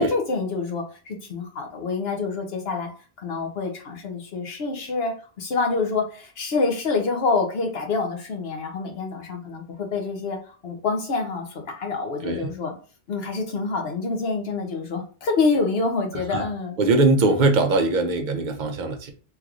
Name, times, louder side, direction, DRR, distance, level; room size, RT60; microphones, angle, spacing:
voice 1, 0.0-2.9 3.2-12.7 13.1-16.8, left 4 dB, 75° left, 3 dB, 1.1 m, -27 dB
voice 2, 16.8-19.1, right 3 dB, 55° right, 6 dB, 0.6 m, -21 dB
3.3 x 3.0 x 2.4 m, 0.37 s
omnidirectional pair, 1.0 m